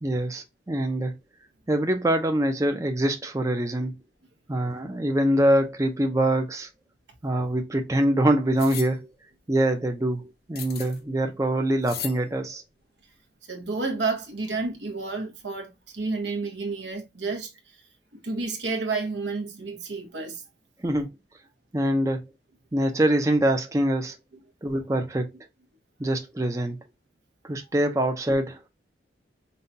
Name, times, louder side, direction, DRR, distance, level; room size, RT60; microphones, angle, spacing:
voice 1, 0.0-1.1 1.7-3.9 4.5-6.7 7.2-9.1 9.5-12.6 20.8-21.1 21.7-22.2 22.7-24.2 24.6-25.3 26.0-26.8 27.4-28.7, right 1 dB, 15° right, 0.5 m, -24 dB
sound 1, 8.6-8.9 10.6-11.0 11.8-12.2, left 9 dB, 55° left, 0.6 m, -36 dB
voice 2, 13.5-17.5 18.1-20.4, right 3 dB, 70° right, 0.9 m, -30 dB
5.4 x 2.3 x 2.6 m
head